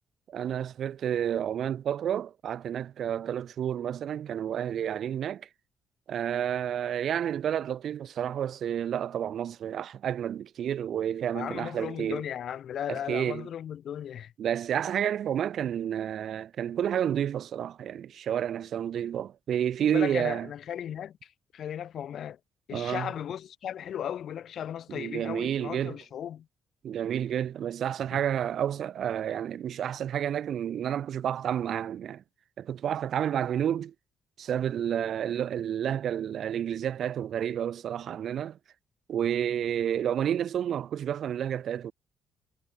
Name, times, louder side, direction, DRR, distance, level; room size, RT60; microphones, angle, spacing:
voice 1, 0.3-5.5 6.1-12.2 12.9-13.5 14.4-20.5 22.7-23.1 24.9-26.0 26.8-32.2 32.6-33.9 34.4-38.6 39.1-41.9, right 9 dB, 65° right, 4.4 m, -30 dB
voice 2, 11.3-14.3 19.9-22.4 22.7-26.5 28.1-28.2, left 9 dB, 65° left, 3.0 m, -36 dB
cardioid pair, 90°, 0 cm